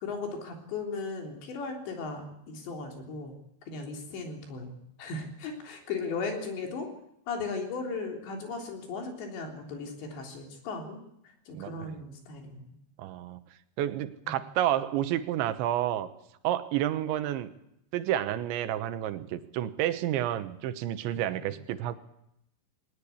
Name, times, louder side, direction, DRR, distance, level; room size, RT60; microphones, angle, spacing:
voice 1, 0.0-3.3 3.7-6.9 7.3-11.0 11.5-12.7 14.2-14.4 21.3-21.5, left 4 dB, 75° left, 3 dB, 5.7 m, -37 dB
voice 2, 11.6-11.9 13.0-13.4 13.8-16.1 16.4-17.5 17.9-22.0, right 12 dB, 85° right, 11 dB, 3.4 m, -30 dB
19.5 x 19.5 x 8.5 m, 0.79 s
omnidirectional pair, 5.1 m